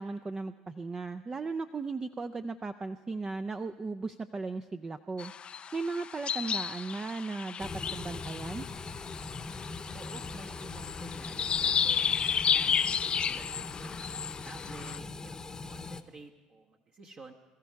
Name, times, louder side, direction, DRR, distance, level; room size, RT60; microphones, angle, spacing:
voice 1, 0.0-5.3 5.7-8.7, right 3 dB, 25° right, 9 dB, 0.5 m, -36 dB
sound 1, 5.2-15.0, left 7 dB, 40° left, 0.4 m, -33 dB
sound 2, 7.6-16.0, left 3 dB, 25° left, 0.9 m, -41 dB
voice 2, 9.9-12.8 13.3-15.4 15.6-17.3, right 3 dB, 45° right, 0 dB, 1.3 m, -51 dB
21.5 x 14.0 x 4.7 m, 1.2 s
hypercardioid pair, 70°, 3 cm